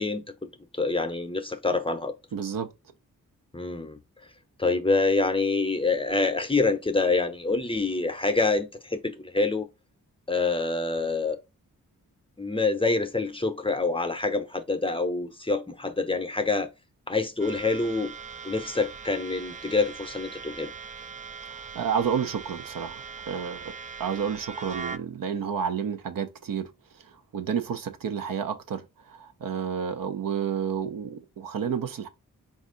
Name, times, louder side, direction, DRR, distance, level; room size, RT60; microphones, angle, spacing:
voice 1, 0.0-2.1 3.5-4.0 4.6-9.7 10.3-11.4 12.4-16.7 17.1-18.1 18.4-20.7, left 3 dB, 15° left, 0.6 m, -26 dB
voice 2, 2.3-2.7 21.7-23.7 24.0-32.1, right 7 dB, 75° right, 0.7 m, -30 dB
sound 1, 17.4-25.0, right 6 dB, 25° right, 0.3 m, -40 dB
4.2 x 2.5 x 3.7 m
cardioid pair, 50°, 34 cm